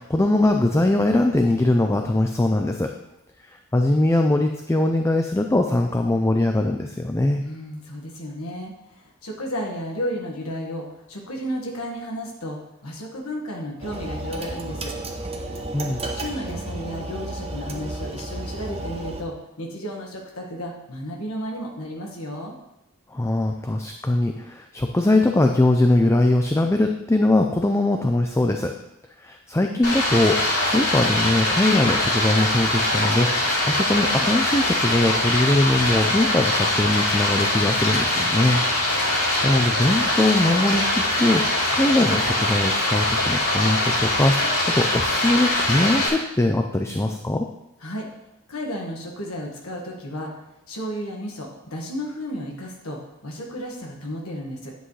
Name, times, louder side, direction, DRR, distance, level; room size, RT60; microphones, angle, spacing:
voice 1, 0.0-2.9 3.5-7.4 15.7-16.0 23.1-28.7 29.2-38.6 39.0-47.5, left 1 dB, 15° left, 4 dB, 0.5 m, -21 dB
voice 2, 7.4-15.0 16.1-22.5 47.8-48.1 48.5-54.7, equal, 75° left, -1 dB, 1.8 m, -33 dB
sound 1, 13.8-19.2, right 2 dB, 30° right, 0.9 m, -32 dB
Stream, 29.8-46.1, left 1 dB, 90° left, 3.8 m, -22 dB
10.0 x 7.9 x 3.3 m, 0.88 s
head